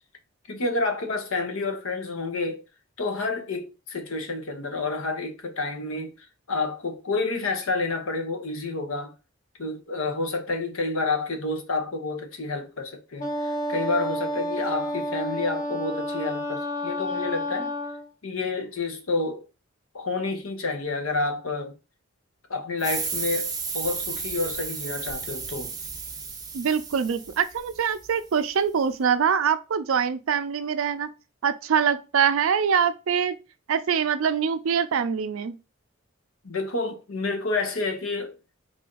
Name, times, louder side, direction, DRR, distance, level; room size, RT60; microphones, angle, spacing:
voice 1, 0.5-2.6 3.0-6.1 6.5-9.1 9.6-17.7 18.2-19.4 19.9-21.8 22.5-25.7 36.4-38.3, left 3 dB, 85° left, 0.8 m, -29 dB
Wind instrument woodwind instrument, 13.2-18.1, equal, 35° left, 0.7 m, -30 dB
sound 1, 22.8-28.1, right 5 dB, 20° right, 0.6 m, -33 dB
voice 2, 26.5-31.1 31.4-33.4 33.7-35.6, right 7 dB, 75° right, 0.4 m, -24 dB
3.3 x 2.5 x 3.8 m
head